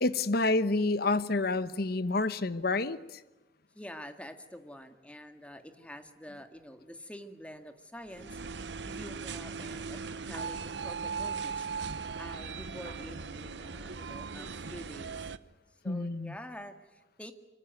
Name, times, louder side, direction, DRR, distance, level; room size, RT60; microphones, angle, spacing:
voice 1, 0.0-3.2 15.8-16.3, left 2 dB, 55° left, 1.1 m, -29 dB
voice 2, 3.7-8.4 8.8-11.7 12.2-15.3 15.8-17.3, equal, 5° left, 1.9 m, -47 dB
sound 1, 8.1-15.4, right 5 dB, 70° right, 1.0 m, -38 dB
24.5 x 24.5 x 9.4 m
head